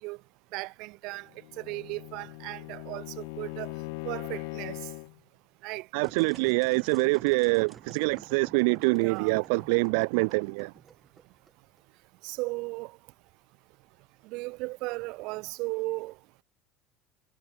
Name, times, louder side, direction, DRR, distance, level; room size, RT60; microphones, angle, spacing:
voice 1, 0.5-1.3 1.6-3.7 4.0-4.8 5.6-5.9 9.0-9.4 12.2-12.9 14.3-16.1, right 24 dB, 60° right, 1.8 m, -36 dB
Bowed string instrument, 1.3-5.2, left 31 dB, 85° left, 6.7 m, -40 dB
voice 2, 5.9-10.7, right 30 dB, 85° right, 0.5 m, -25 dB
sound 1, 6.0-11.8, right 6 dB, 20° right, 5.5 m, -51 dB
cardioid pair, 165°, 0 cm